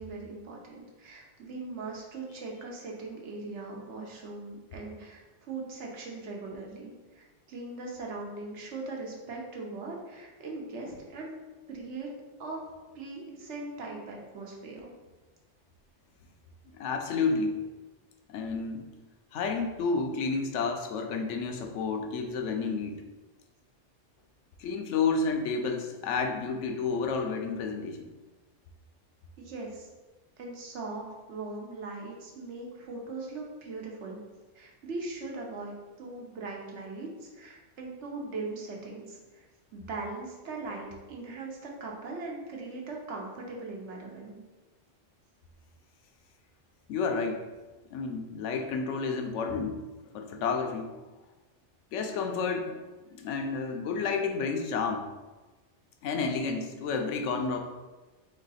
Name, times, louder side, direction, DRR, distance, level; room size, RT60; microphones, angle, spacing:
voice 1, 0.0-11.4 11.7-12.1 12.4-12.6 12.9-14.9 29.4-29.9 30.4-34.2 34.5-39.5 39.7-44.4, right 3 dB, 70° right, -1 dB, 1.1 m, -40 dB
voice 2, 16.7-17.6 18.3-18.9 19.3-23.0 24.6-28.1 46.9-47.4 47.9-49.9 50.1-50.9 51.9-52.8 53.1-55.1 56.0-57.6, left 4 dB, 80° left, 4 dB, 0.9 m, -30 dB
3.6 x 3.2 x 4.0 m, 1.2 s
omnidirectional pair, 1.2 m